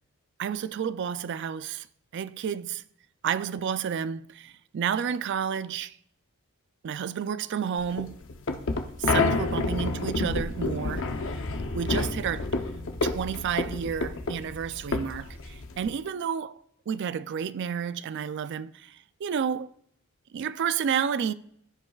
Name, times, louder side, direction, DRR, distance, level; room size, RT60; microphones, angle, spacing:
voice 1, 0.4-1.9 2.1-2.8 3.2-5.9 6.8-8.2 9.0-11.1 11.7-12.5 13.0-16.6 16.9-19.0 19.2-19.7 20.3-21.3, right 7 dB, 50° right, 0.3 m, -30 dB
sound 1, 7.8-16.0, left 3 dB, 60° left, 0.8 m, -29 dB
14.5 x 5.4 x 2.4 m
head